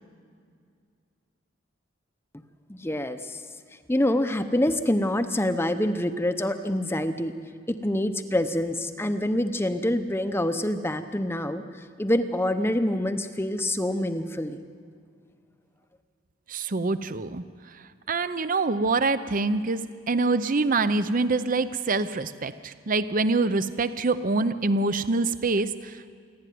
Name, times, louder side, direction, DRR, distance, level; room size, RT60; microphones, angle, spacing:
voice 1, 2.7-3.4 3.9-7.3 7.7-14.6, left 1 dB, 10° left, 9 dB, 0.7 m, -26 dB
voice 2, 16.5-17.4 18.1-26.1, right 3 dB, 45° right, 13 dB, 0.7 m, -25 dB
26.5 x 12.0 x 9.4 m, 2.2 s
head